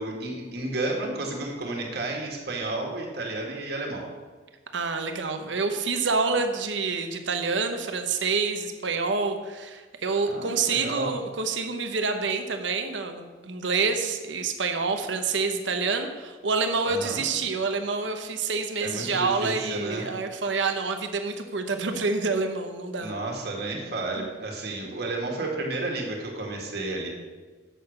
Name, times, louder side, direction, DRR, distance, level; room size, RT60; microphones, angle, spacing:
voice 1, 0.0-4.1 10.3-11.1 16.8-17.3 18.8-20.1 23.0-27.1, right 2 dB, 55° right, 0 dB, 2.0 m, -32 dB
voice 2, 4.7-23.1 24.2-24.3, right 4 dB, 80° right, 7 dB, 0.9 m, -27 dB
7.7 x 6.8 x 6.5 m, 1.3 s
head